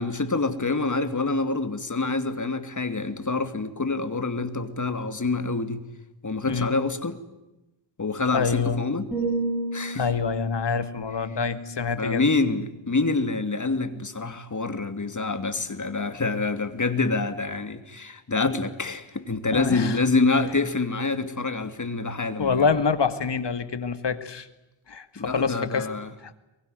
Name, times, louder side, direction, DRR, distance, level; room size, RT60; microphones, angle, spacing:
voice 1, 0.0-5.8 6.2-7.2 8.0-9.1 9.7-10.1 12.0-22.7 25.2-26.1, left 3 dB, 40° left, 10 dB, 2.8 m, -26 dB
voice 2, 8.3-8.8 9.9-12.3 19.5-20.0 22.4-24.5 24.9-25.9 26.2-26.3, left 5 dB, 60° left, 11 dB, 2.3 m, -26 dB
sound 1, 9.1-13.1 13.4-13.8, right 2 dB, 5° right, 7.3 m, -33 dB
24.0 x 23.0 x 9.4 m, 0.97 s
wide cardioid pair, 75°, 47 cm